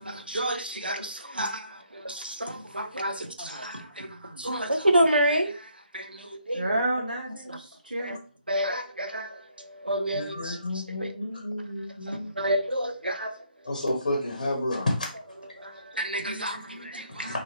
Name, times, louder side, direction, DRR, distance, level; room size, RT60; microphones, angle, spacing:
voice 1, 0.0-6.8 7.5-7.6 8.0-8.2 8.5-11.1 12.1-13.4 15.6-17.4, right 1 dB, 90° right, 0.6 m, -29 dB
voice 2, 6.5-8.2 16.3-17.3, right 1 dB, 65° right, 1.2 m, -32 dB
voice 3, 10.1-12.3 13.6-15.1 17.1-17.4, left 1 dB, 55° left, 0.9 m, -30 dB
3.0 x 2.8 x 2.8 m
figure-of-eight pair, 150°, 5 cm